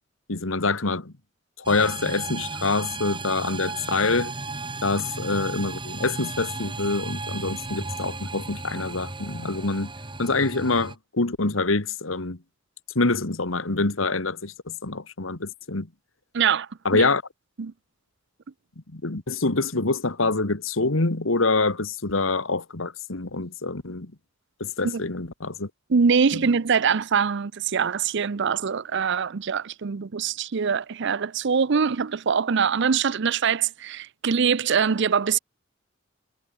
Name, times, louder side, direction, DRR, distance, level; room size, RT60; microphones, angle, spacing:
voice 1, 0.3-1.1 1.7-4.3 4.8-9.9 10.2-12.4 13.0-15.9 16.9-17.2 18.9-24.1 24.6-25.7 26.3-26.4, left 3 dB, 85° left, 1.8 m, -25 dB
sound 1, 1.6-10.9, right 3 dB, 25° right, 2.8 m, -35 dB
voice 2, 16.3-17.1 17.6-17.7 24.8-25.0 25.9-35.4, right 6 dB, 65° right, 0.6 m, -23 dB
head